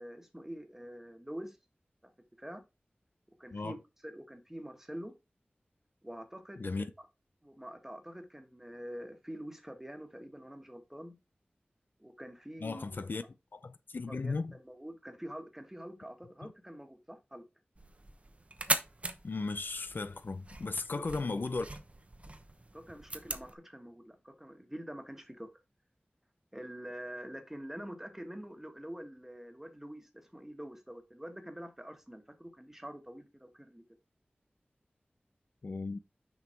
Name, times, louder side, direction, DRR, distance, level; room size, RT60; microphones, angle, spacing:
voice 1, 0.0-1.6 2.4-2.6 3.4-3.8 4.0-5.1 6.0-7.1 7.4-11.1 12.0-13.1 14.1-17.4 20.9-21.1 22.7-25.5 26.5-33.8, equal, 10° right, 1.5 m, -46 dB
voice 2, 12.6-13.2 13.5-14.5 16.4-16.5 19.2-21.7 35.6-36.0, left 3 dB, 65° left, 0.5 m, -36 dB
sound 1, 17.8-23.5, right 2 dB, 35° right, 0.9 m, -39 dB
6.4 x 5.2 x 4.4 m
wide cardioid pair, 80°, 4 cm